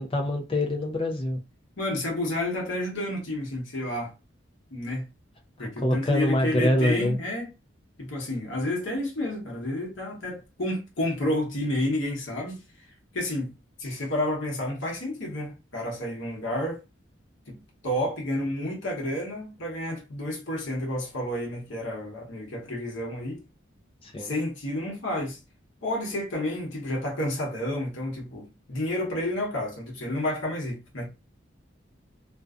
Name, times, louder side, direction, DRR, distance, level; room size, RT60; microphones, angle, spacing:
voice 1, 0.0-1.4 5.8-7.2 24.0-24.3, left 1 dB, 25° left, 0.4 m, -25 dB
voice 2, 1.8-4.1 4.7-5.1 5.6-7.5 8.0-12.6 13.1-13.5 13.8-16.8 17.5-17.6 17.8-23.4 24.2-25.4 25.8-31.1, left 1 dB, 75° left, 0.9 m, -30 dB
2.5 x 2.2 x 2.3 m
head